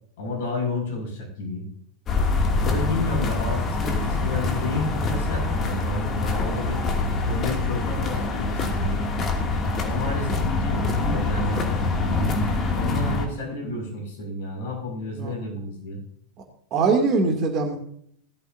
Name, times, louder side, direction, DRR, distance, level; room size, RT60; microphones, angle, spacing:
voice 1, 0.2-1.7 2.6-6.8 7.2-9.0 9.8-11.9 12.7-16.0, left 2 dB, 50° left, 0 dB, 6.6 m, -31 dB
sound 1, 2.1-13.3, left 3 dB, 25° left, 2.5 m, -25 dB
voice 2, 16.7-17.8, right 4 dB, 35° right, 3 dB, 2.6 m, -22 dB
19.5 x 13.5 x 2.7 m, 0.65 s
figure-of-eight pair, 90°, 0 cm